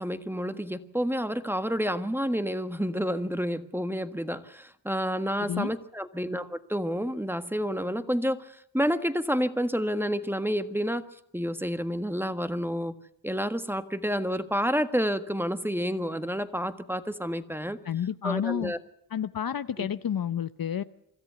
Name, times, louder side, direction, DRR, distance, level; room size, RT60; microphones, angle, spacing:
voice 1, 0.0-11.0 11.3-12.9 13.2-17.8 18.2-18.8 19.8-19.9, equal, 5° right, 10 dB, 1.5 m, -29 dB
voice 2, 5.4-5.8 17.8-18.7 19.1-20.8, left 9 dB, 50° left, 13 dB, 0.8 m, -30 dB
25.0 x 13.5 x 8.1 m, 0.73 s
cardioid pair, 50°, 46 cm